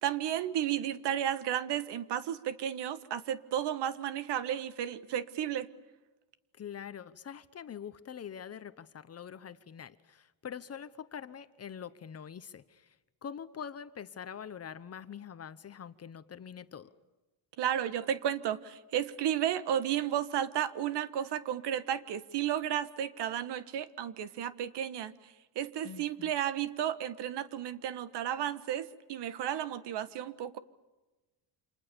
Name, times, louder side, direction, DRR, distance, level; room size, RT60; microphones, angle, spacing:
voice 1, 0.0-5.7 17.6-30.6, right 10 dB, 60° right, 15 dB, 1.5 m, -33 dB
voice 2, 6.6-13.0 13.2-16.9 25.8-26.3, left 8 dB, 30° left, 13 dB, 1.0 m, -44 dB
29.0 x 27.0 x 7.0 m, 1.1 s
cardioid pair, 140°, 46 cm